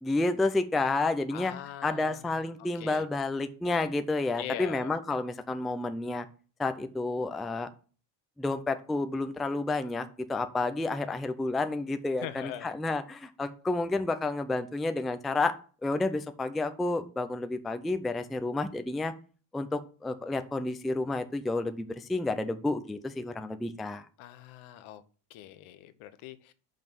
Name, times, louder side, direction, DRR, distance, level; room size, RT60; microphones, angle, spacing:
voice 1, 0.0-1.5 1.8-6.3 6.6-7.7 8.4-15.5 15.8-19.1 19.5-24.1, left 2 dB, ahead, 0.3 m, -30 dB
voice 2, 1.3-2.2 2.7-3.1 4.4-4.9 12.2-12.7 24.2-25.0 25.3-26.5, left 12 dB, 80° left, 1.0 m, -42 dB
5.4 x 5.3 x 6.0 m
cardioid pair, 125°, 48 cm